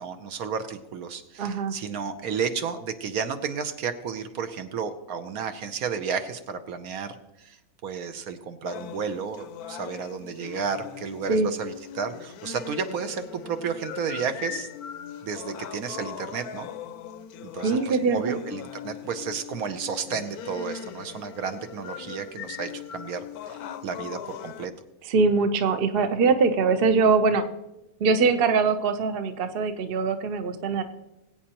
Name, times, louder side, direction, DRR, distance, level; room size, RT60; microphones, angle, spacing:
voice 1, 0.0-7.6 7.8-14.7 15.2-16.7 17.4-24.7, right 6 dB, 70° right, 9 dB, 1.2 m, -32 dB
voice 2, 1.4-1.8 11.3-11.5 17.6-18.4 25.1-27.4 28.0-30.8, right 4 dB, 50° right, 9 dB, 0.7 m, -22 dB
sound 1, 8.7-24.6, left 9 dB, 75° left, 1.1 m, -40 dB
21.0 x 8.7 x 2.9 m, 0.94 s
omnidirectional pair, 1.7 m